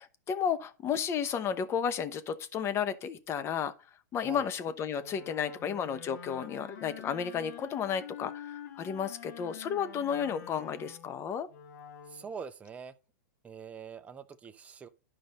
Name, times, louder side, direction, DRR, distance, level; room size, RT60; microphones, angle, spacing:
voice 1, 0.0-3.7 4.1-11.5, left 7 dB, 25° left, 0.8 m, -33 dB
Wind instrument woodwind instrument, 5.0-12.4, left 8 dB, 65° left, 1.3 m, -47 dB
voice 2, 12.1-12.9 13.4-14.9, right 6 dB, 15° right, 0.5 m, -44 dB
11.0 x 5.1 x 4.1 m
hypercardioid pair, 130°, 10 cm